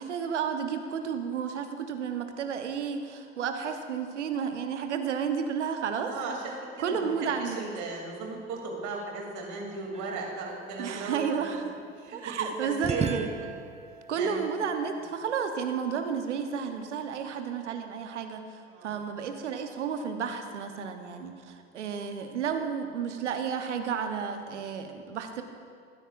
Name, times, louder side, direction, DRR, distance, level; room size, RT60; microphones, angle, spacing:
voice 1, 0.0-6.1 6.8-7.6 10.8-11.8 12.1-13.3 14.1-25.4, right 6 dB, 85° right, 6 dB, 1.0 m, -32 dB
voice 2, 6.1-11.4 12.0-13.1 14.1-14.4 18.7-19.0, right 3 dB, 55° right, 0 dB, 3.0 m, -37 dB
sound 1, 9.9-12.1 12.8-15.7, right 6 dB, 20° right, 0.5 m, -39 dB
20.0 x 9.9 x 2.5 m, 2.3 s
hypercardioid pair, 70°, 35 cm